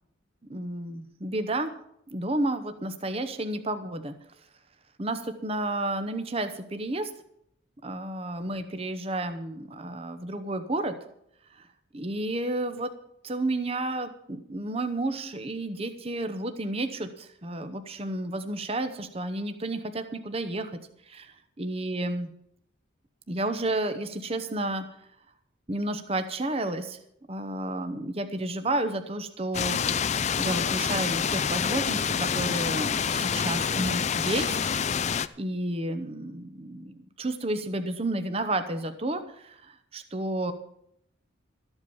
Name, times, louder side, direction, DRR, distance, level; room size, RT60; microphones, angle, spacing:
voice 1, 0.5-1.7 2.1-4.1 5.0-7.1 7.8-11.0 11.6-11.7 11.9-12.9 13.2-20.7 21.1-22.3 23.3-24.8 25.7-27.0 27.3-34.6 35.4-40.5, right 2 dB, 30° right, 8 dB, 0.9 m, -31 dB
sound 1, 29.5-35.3, left 7 dB, 35° left, 0.4 m, -27 dB
13.5 x 8.0 x 7.1 m, 0.72 s
head